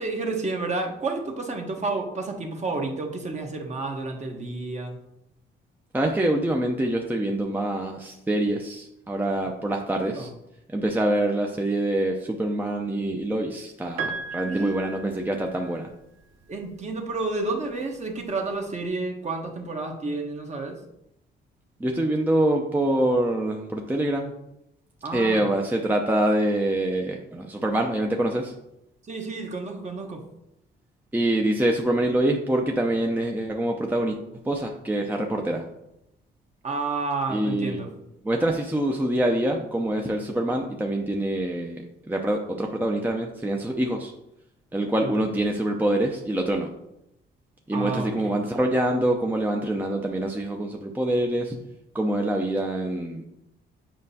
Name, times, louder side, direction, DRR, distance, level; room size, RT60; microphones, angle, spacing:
voice 1, 0.0-5.0 10.0-10.3 14.5-14.8 16.5-20.8 25.0-25.5 29.1-30.2 36.6-37.9 45.0-45.1 47.7-48.4, right 3 dB, 35° right, 2 dB, 1.1 m, -30 dB
voice 2, 5.9-10.3 10.7-15.9 21.8-24.3 25.1-28.5 31.1-35.7 37.3-37.8 38.3-41.8 42.1-44.1 44.7-46.7 47.7-51.6 51.9-53.3, right 1 dB, 10° right, 1 dB, 0.6 m, -25 dB
Piano, 14.0-16.0 17.3-17.4, right 4 dB, 85° right, 0.8 m, -35 dB
7.5 x 5.0 x 2.8 m, 0.84 s
cardioid pair, 90°, 20 cm